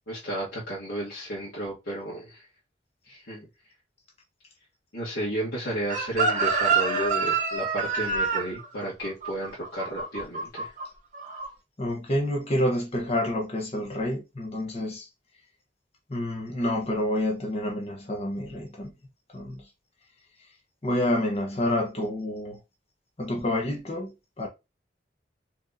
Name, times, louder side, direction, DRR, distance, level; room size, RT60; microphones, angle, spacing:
voice 1, 0.1-2.4 3.1-3.5 4.9-10.7, right 1 dB, 90° left, 1.4 m, -33 dB
Chicken rooster, 5.9-10.8 11.1-11.5, right 5 dB, 45° right, 0.9 m, -26 dB
voice 2, 11.8-15.1 16.1-18.9 19.3-19.6 20.8-22.6 23.2-24.1 24.4-24.5, left 1 dB, 35° left, 1.0 m, -28 dB
4.4 x 3.0 x 2.7 m
head